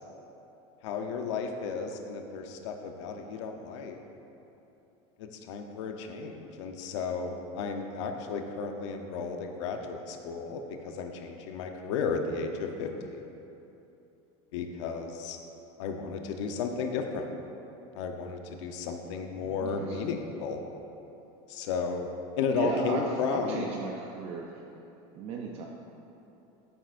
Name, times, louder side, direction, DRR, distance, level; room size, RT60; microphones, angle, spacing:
voice 1, 0.8-4.0 5.2-13.2 14.5-15.4 15.8-17.3 17.9-20.6 21.5-22.1 22.4-23.7, left 5 dB, 85° left, 4 dB, 0.9 m, -33 dB
voice 2, 19.4-20.0 22.5-24.6 25.1-25.7, right 4 dB, 45° right, 0 dB, 0.6 m, -35 dB
13.5 x 7.8 x 2.6 m, 2.9 s
cardioid pair, 155°, 15 cm